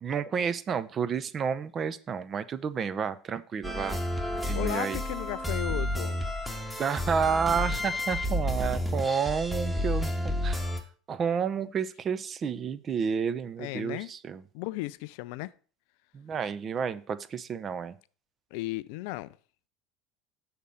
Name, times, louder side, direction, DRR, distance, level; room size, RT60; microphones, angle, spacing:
voice 1, 0.0-4.1 4.5-5.0 6.8-10.6 11.1-14.4 16.1-17.9, right 6 dB, 35° right, 0.6 m, -30 dB
sound 1, 3.6-10.8, left 1 dB, 5° right, 1.4 m, -31 dB
voice 2, 4.5-6.3 13.6-14.1 14.5-15.5 18.5-19.4, left 19 dB, 60° left, 0.3 m, -35 dB
6.9 x 4.4 x 6.3 m
hypercardioid pair, 75°, 0 cm